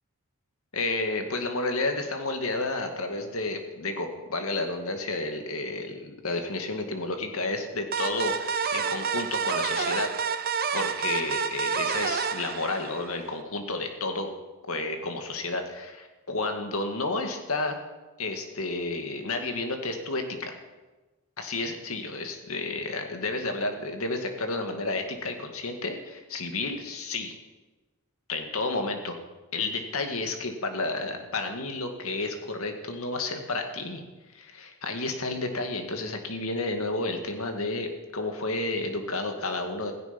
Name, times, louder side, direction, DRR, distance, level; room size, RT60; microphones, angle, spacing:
voice 1, 0.7-10.1 10.7-14.3 14.7-17.8 18.2-20.6 21.4-27.4 28.3-29.2 29.5-34.0 34.3-39.9, left 2 dB, 70° left, 5 dB, 2.1 m, -31 dB
sound 1, 7.9-13.3, right 6 dB, 40° right, 0.8 m, -29 dB
16.0 x 16.0 x 5.3 m, 1.2 s
head